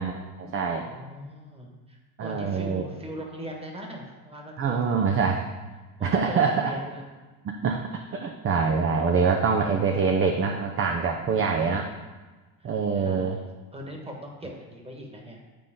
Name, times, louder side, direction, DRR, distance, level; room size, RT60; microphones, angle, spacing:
voice 1, 0.0-0.8 2.2-2.8 4.6-5.4 6.0-6.7 7.5-7.8 8.1-11.9 12.6-13.4, right 5 dB, 30° right, 3 dB, 0.6 m, -25 dB
voice 2, 0.7-5.3 6.0-7.0 12.9-13.4 13.7-15.4, equal, 15° right, 1 dB, 1.5 m, -40 dB
9.2 x 3.9 x 3.7 m, 1.3 s
supercardioid pair, 85°, 45 cm